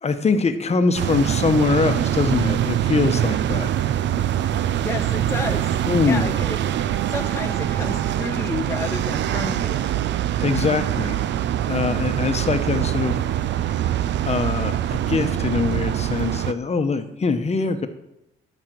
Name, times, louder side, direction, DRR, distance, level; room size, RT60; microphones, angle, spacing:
voice 1, 0.0-3.7 5.9-6.3 10.4-11.2 11.7-13.2 14.2-17.9, left 4 dB, 35° left, 8 dB, 1.0 m, -23 dB
sound 1, 1.0-16.5, right 11 dB, 65° right, 0.5 m, -24 dB
voice 2, 4.8-9.9, left 3 dB, 15° left, 4 dB, 0.6 m, -31 dB
11.5 x 5.4 x 6.2 m, 0.85 s
cardioid pair, 90°, 20 cm